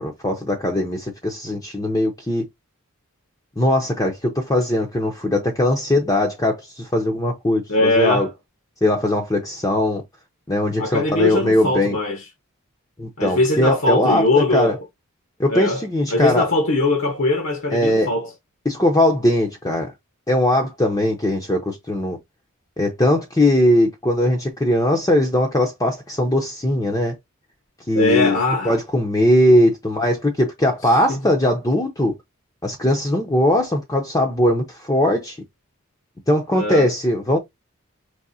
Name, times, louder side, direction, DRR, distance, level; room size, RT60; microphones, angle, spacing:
voice 1, 0.0-2.4 3.6-8.3 8.8-10.0 10.5-12.0 13.0-14.8 15.4-16.5 17.7-18.1 18.6-19.9 20.3-22.2 22.8-27.1 27.9-28.4 28.6-32.1 32.6-35.4 36.3-37.4, left 1 dB, 15° left, 0.7 m, -20 dB
voice 2, 7.7-8.3 10.8-12.2 13.2-14.8 15.5-18.3 27.9-28.7 31.1-31.2 36.5-36.9, left 2 dB, 60° left, 1.0 m, -20 dB
4.8 x 3.2 x 2.6 m
head